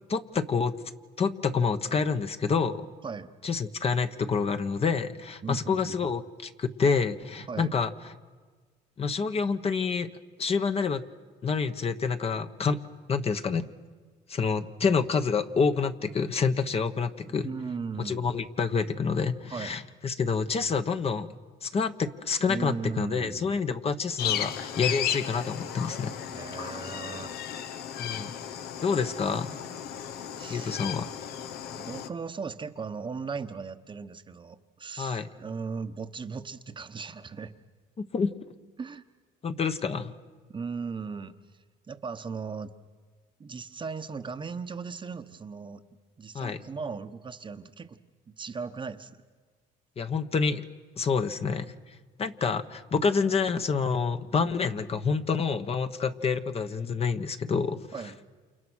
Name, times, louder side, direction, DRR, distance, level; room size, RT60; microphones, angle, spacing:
voice 1, 0.1-0.7 1.2-2.8 3.4-7.9 9.0-10.1 10.4-11.0 11.4-12.8 13.1-13.7 14.3-17.5 18.0-21.3 21.6-26.2 28.0-28.3 28.8-29.6 30.5-31.1 35.0-35.3 38.0-38.3 39.4-40.1 46.3-46.6 50.0-50.6 51.0-51.7 52.2-57.9, left 5 dB, 35° left, 8 dB, 1.3 m, -28 dB
voice 2, 5.4-6.1 7.5-7.8 17.3-18.3 19.5-19.8 22.5-23.6 26.3-27.4 30.4-30.8 31.8-37.5 38.8-39.0 40.5-42.7 43.4-45.8 46.2-48.0 48.4-49.2 57.9-58.2, right 5 dB, 30° right, 8 dB, 1.1 m, -37 dB
sound 1, 24.2-32.1, left 9 dB, 70° left, 1.2 m, -35 dB
29.0 x 28.0 x 6.4 m, 1.5 s
cardioid pair, 110°, 17 cm